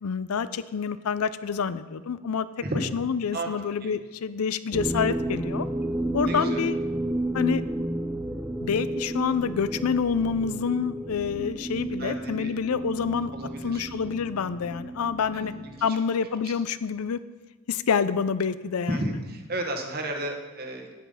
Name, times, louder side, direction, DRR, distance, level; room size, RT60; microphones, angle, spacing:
voice 1, 0.0-2.5 2.9-5.7 6.1-6.8 7.3-7.6 8.6-13.3 13.6-15.5 15.8-17.2 17.7-19.0, left 6 dB, 75° left, 15 dB, 0.5 m, -27 dB
voice 2, 2.6-2.9 3.3-3.5 3.8-3.9 6.2-6.6 12.0-12.6 13.3-13.9 15.3-16.0 16.4-16.5 18.9-20.9, right 1 dB, 45° right, 3 dB, 1.4 m, -33 dB
sound 1, 4.7-15.9, right 1 dB, 10° right, 0.4 m, -32 dB
9.1 x 8.4 x 5.5 m, 1.2 s
head